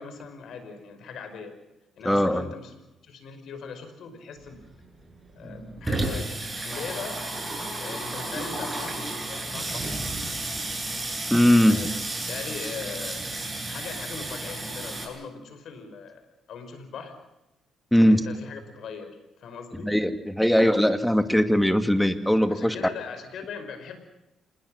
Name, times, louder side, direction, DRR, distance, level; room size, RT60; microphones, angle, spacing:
voice 1, 0.0-1.6 2.0-2.7 3.0-4.6 5.4-7.2 7.8-10.5 11.7-11.9 12.3-13.3 13.6-16.2 16.5-17.2 18.1-19.9 22.5-24.0, left 5 dB, 70° left, 8 dB, 5.3 m, -40 dB
voice 2, 2.0-2.4 11.3-11.8 17.9-18.2 19.8-22.7, equal, 5° left, 9 dB, 2.3 m, -20 dB
Water tap faucet / Sink (filling or washing), 4.4-4.5 4.8-4.9 5.2-15.1, right 2 dB, 15° right, 7.7 m, -32 dB
26.5 x 21.0 x 6.5 m, 0.92 s
cardioid pair, 90°, 0 cm